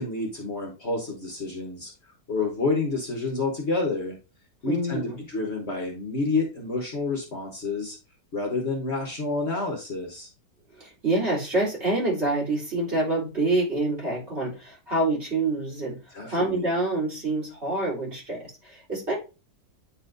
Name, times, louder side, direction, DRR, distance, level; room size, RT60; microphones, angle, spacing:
voice 1, 0.0-1.9 2.3-4.2 4.6-8.0 8.3-10.3 16.1-16.7, left 3 dB, 45° left, 1 dB, 1.2 m, -29 dB
voice 2, 4.6-5.2 10.8-16.0 16.3-19.1, right 2 dB, 40° right, -4 dB, 3.5 m, -26 dB
9.0 x 4.2 x 2.5 m, 0.30 s
omnidirectional pair, 1.7 m